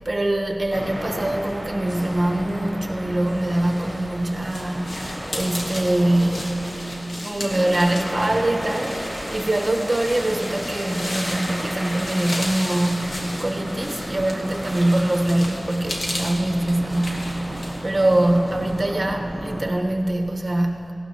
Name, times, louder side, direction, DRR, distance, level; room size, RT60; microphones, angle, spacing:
voice 1, 0.0-6.7 7.2-17.4 17.8-20.9, right 1 dB, 35° right, 2 dB, 1.1 m, -23 dB
sound 1, 0.7-19.7, equal, 5° right, 2.5 m, -33 dB
sound 2, 3.7-18.8, left 1 dB, 65° left, 1.5 m, -35 dB
16.5 x 12.0 x 2.9 m, 2.7 s
wide cardioid pair, 60°, 0 cm